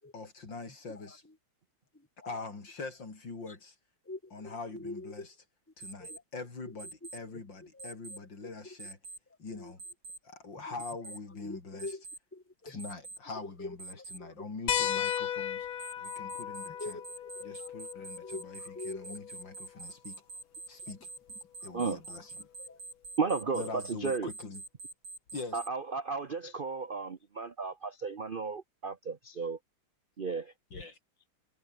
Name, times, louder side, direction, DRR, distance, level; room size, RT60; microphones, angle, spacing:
voice 1, 0.1-1.2 2.2-3.7 4.3-5.2 5.8-9.0 9.4-9.8 10.2-11.9 12.6-15.7 16.0-17.0 17.4-18.6 18.9-20.2 20.7-21.1 21.6-22.5 23.5-24.6 25.3-25.6 30.7-31.0, left 3 dB, 65° left, 5.0 m, -43 dB
voice 2, 0.9-1.4 1.9-2.5 3.5-3.6 4.0-5.3 6.0-6.2 6.6-8.8 9.5-9.7 10.5-12.0 12.3-12.8 13.3-14.4 14.9-15.0 16.7-17.7 18.0-19.2 19.7-19.9 20.8-20.9 21.6-22.2 22.6-22.8, left 2 dB, 5° left, 2.1 m, -46 dB
Alarm, 5.8-6.2 6.8-7.2 7.8-8.2 8.8-9.2 9.8-10.2 10.8-11.2 11.8-12.2 12.8-13.2 13.8-14.2 14.8-15.2 15.8-25.7, right 3 dB, 75° right, 7.2 m, -45 dB
sound 1, 14.7-19.8 21.3-21.4 23.1-23.2, left 9 dB, 85° left, 2.2 m, -36 dB
voice 3, 23.2-24.3 25.5-29.6 30.2-30.5, right 5 dB, 40° right, 0.8 m, -34 dB
omnidirectional pair, 2.2 m